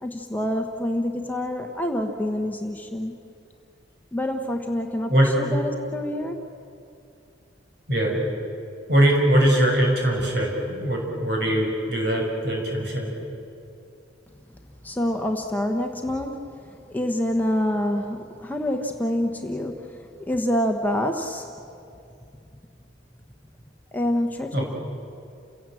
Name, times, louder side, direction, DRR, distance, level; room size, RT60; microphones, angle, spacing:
voice 1, 0.0-3.1 4.1-6.4 14.8-21.5 23.9-24.6, left 1 dB, 10° left, 3 dB, 1.1 m, -27 dB
voice 2, 7.9-8.2 8.9-13.1 24.5-24.7, right 1 dB, 55° right, 0 dB, 6.0 m, -21 dB
30.0 x 17.0 x 7.6 m, 2.5 s
head